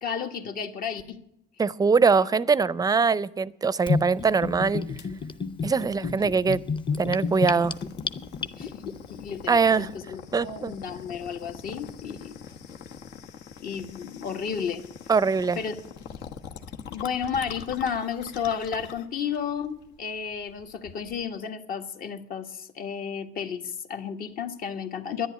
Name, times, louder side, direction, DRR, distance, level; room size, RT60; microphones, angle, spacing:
voice 1, 0.0-1.2 5.8-6.3 8.5-12.3 13.6-14.8 15.6-15.8 16.9-25.3, left 7 dB, 60° left, 1.7 m, -32 dB
voice 2, 1.6-4.8 5.6-6.6 7.0-7.7 9.5-9.9 10.3-10.7 15.1-15.6, right 5 dB, 20° right, 0.5 m, -22 dB
Gurgling / Bathtub (filling or washing), 3.9-8.9, left 5 dB, 30° left, 0.8 m, -30 dB
sound 1, 5.0-21.3, left 7 dB, 80° left, 1.2 m, -44 dB
11.0 x 10.5 x 9.2 m
cardioid pair, 110°, 17 cm